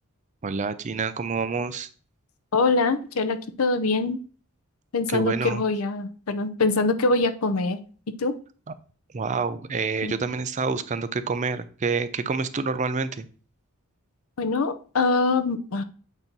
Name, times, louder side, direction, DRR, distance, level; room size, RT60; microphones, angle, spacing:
voice 1, 0.4-1.9 5.1-5.6 9.1-13.3, right 4 dB, 35° right, 12 dB, 0.4 m, -27 dB
voice 2, 2.5-4.2 4.9-7.8 8.2-8.3 10.0-10.1 14.4-15.8, left 3 dB, 75° left, 11 dB, 0.6 m, -24 dB
8.1 x 2.9 x 5.3 m, 0.40 s
head